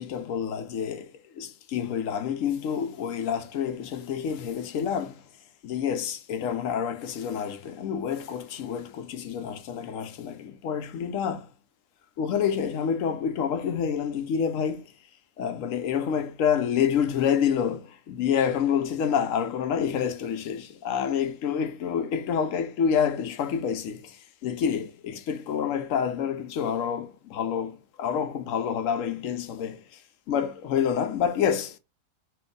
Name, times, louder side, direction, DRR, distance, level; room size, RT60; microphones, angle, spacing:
voice 1, 0.0-5.2 5.6-11.5 12.2-14.9 15.4-30.0 30.3-31.8, left 8 dB, 75° left, 1.0 m, -28 dB
3.7 x 2.5 x 3.7 m
omnidirectional pair, 1.4 m